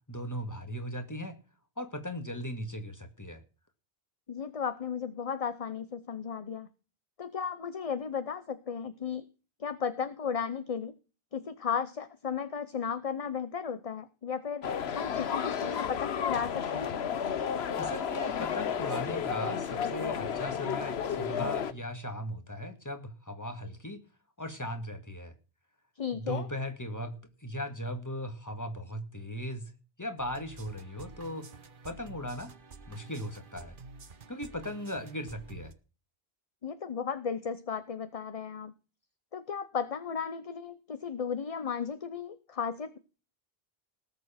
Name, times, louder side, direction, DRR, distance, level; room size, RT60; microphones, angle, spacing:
voice 1, 0.1-1.4 1.8-3.4 17.8-24.0 24.4-25.3 26.1-29.7 30.0-31.5 31.8-32.5 32.9-33.8 34.3-35.7, equal, 15° left, 7 dB, 1.9 m, -38 dB
voice 2, 4.3-6.7 7.2-9.3 9.6-10.9 11.3-14.6 14.9-16.9 26.0-26.5 36.6-38.7 39.3-43.0, left 6 dB, 40° left, 12 dB, 0.8 m, -35 dB
sound 1, 14.6-21.7, left 7 dB, 85° left, 1.1 m, -32 dB
sound 2, 30.2-35.7, right 3 dB, 55° right, 1.2 m, -50 dB
18.5 x 6.9 x 5.8 m, 0.34 s
omnidirectional pair, 1.0 m